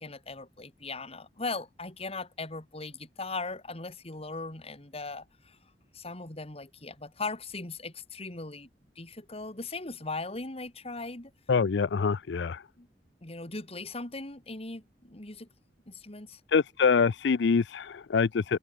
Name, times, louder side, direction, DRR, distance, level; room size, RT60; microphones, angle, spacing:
voice 1, 0.0-5.6 5.9-8.7 9.0-11.3 12.8-12.9 13.2-15.5 15.9-16.4, left 3 dB, 35° left, 2.5 m, -39 dB
voice 2, 11.5-12.6 16.5-18.6, left 5 dB, 80° left, 0.5 m, -25 dB
head